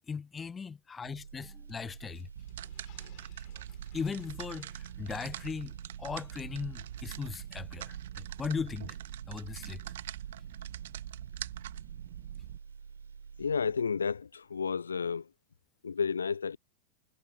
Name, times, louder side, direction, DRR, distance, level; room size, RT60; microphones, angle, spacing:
voice 1, 0.1-2.3 3.9-9.0 9.3-9.8, left 5 dB, 15° left, 1.1 m, -38 dB
sound 1, 1.0-14.2 14.5-14.7, right 6 dB, 75° right, 4.4 m, -49 dB
sound 2, 1.7-5.9 6.2-6.3 6.6-7.0, left 28 dB, 45° left, 3.7 m, -64 dB
sound 3, 2.4-12.6, right 13 dB, 55° right, 1.6 m, -43 dB
voice 2, 13.4-15.3 15.8-16.6, left 6 dB, 75° left, 0.4 m, -31 dB
figure-of-eight pair, 90°, 0 cm